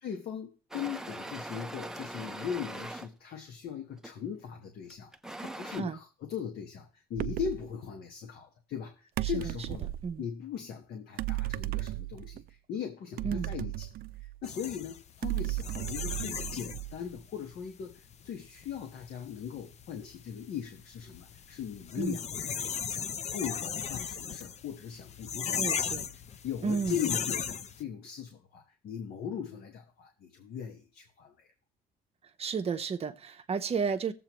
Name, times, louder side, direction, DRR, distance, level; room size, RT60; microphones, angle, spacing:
voice 1, 0.0-5.1 5.4-9.9 10.2-13.9 14.2-25.9 26.4-31.5, left 8 dB, 65° left, 1.3 m, -39 dB
sound 1, 0.7-3.1 4.0-4.3 4.9-5.8, right 1 dB, 5° right, 0.6 m, -41 dB
sound 2, 7.2-7.6 9.2-10.1 11.2-12.4 13.2-14.5 15.2-17.1, right 17 dB, 60° right, 0.4 m, -35 dB
sound 3, 14.4-27.8, left 7 dB, 40° left, 0.6 m, -37 dB
voice 2, 25.6-26.0 26.6-27.0 32.4-34.1, right 5 dB, 35° right, 0.8 m, -32 dB
18.0 x 7.7 x 3.0 m
cardioid pair, 110°, 17 cm